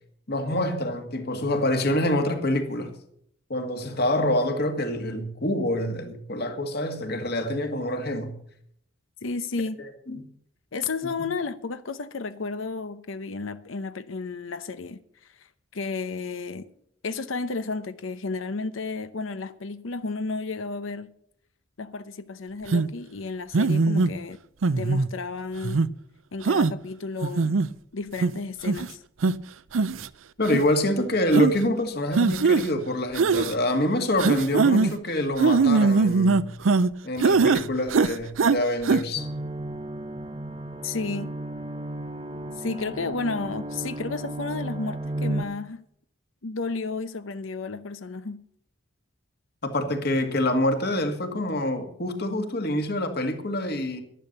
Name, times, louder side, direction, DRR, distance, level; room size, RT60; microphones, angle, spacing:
voice 1, 0.3-2.9 3.5-8.3 10.1-10.2 30.4-36.5 37.0-39.3 49.6-54.0, left 1 dB, 55° left, 2.0 m, -26 dB
voice 2, 9.2-9.8 10.7-16.7 17.0-21.1 21.8-24.4 24.8-25.8 26.3-27.5 27.9-29.0 40.8-41.3 42.6-45.8 46.4-48.4, left 4 dB, 85° left, 0.8 m, -32 dB
sound 1, 22.7-22.9 23.5-24.1 24.6-25.1 25.6-25.9 26.5-26.7 27.2-27.7 28.2-28.3 28.7-28.9 29.2-29.3 29.7-30.1 30.4-30.6 31.3-31.5 32.1-32.7 33.1-33.5 34.2-34.9 35.4-36.9 37.2-37.6 37.9-38.6 38.8-39.0, right 4 dB, 90° right, 0.5 m, -21 dB
sound 2, 39.2-45.4, right 1 dB, 25° right, 0.7 m, -34 dB
12.5 x 11.0 x 6.7 m
head